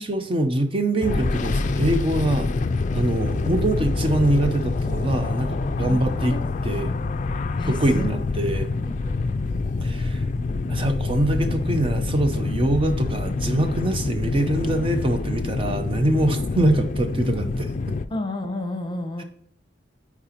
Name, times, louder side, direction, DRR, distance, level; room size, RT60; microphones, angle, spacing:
voice 1, 0.0-2.5 2.9-6.3 6.7-6.9 7.7-8.7 9.8-10.3 10.7-17.7, right 1 dB, 30° right, 7 dB, 0.5 m, -23 dB
sound 1, 1.0-18.0, left 3 dB, 40° left, 0.4 m, -26 dB
voice 2, 5.8-6.4 6.7-6.9 7.6-8.1 8.5-9.2 18.1-19.2, left 2 dB, 25° left, 6 dB, 0.8 m, -32 dB
8.6 x 4.8 x 2.9 m, 0.68 s
head